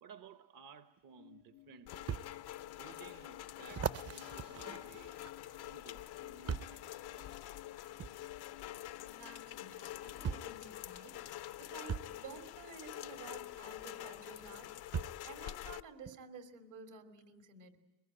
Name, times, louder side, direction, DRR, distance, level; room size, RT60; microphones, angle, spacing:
voice 1, 0.0-2.3 2.8-5.2 5.6-6.9 7.1-7.5, right 6 dB, 55° right, 1.0 m, -57 dB
sound 1, 1.0-1.1 2.1-2.3 2.9-3.0 3.7-5.6 6.5-6.8 8.0-8.2 9.4-9.5 10.2-10.6 11.9-12.1 13.8-13.9 14.9-15.3 16.1-16.2, right 7 dB, 40° right, 0.7 m, -39 dB
sound 2, 1.1-10.5, left 12 dB, 90° left, 2.0 m, -60 dB
Rain, 1.9-15.8, left 14 dB, 70° left, 0.8 m, -47 dB
voice 2, 8.9-14.7 15.2-17.7, right 5 dB, 80° right, 3.1 m, -53 dB
22.5 x 21.0 x 9.0 m
supercardioid pair, 75°, 39 cm